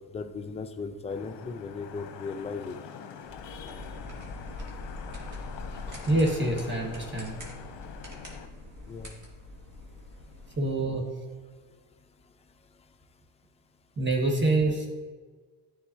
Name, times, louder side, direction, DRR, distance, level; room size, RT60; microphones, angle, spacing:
voice 1, 0.1-2.7 8.9-9.1, left 4 dB, 15° left, 7 dB, 0.4 m, -36 dB
Vehicle horn car horn honking / Traffic noise roadway noise, 1.1-8.5, left 8 dB, 60° left, 0.8 m, -45 dB
sound 1, 3.2-10.5, left 2 dB, 40° right, 1.8 m, -43 dB
voice 2, 6.1-7.4 10.6-11.1 14.0-14.9, right 2 dB, 25° right, -1 dB, 1.5 m, -26 dB
9.4 x 4.0 x 2.7 m, 1.4 s
supercardioid pair, 75°, 48 cm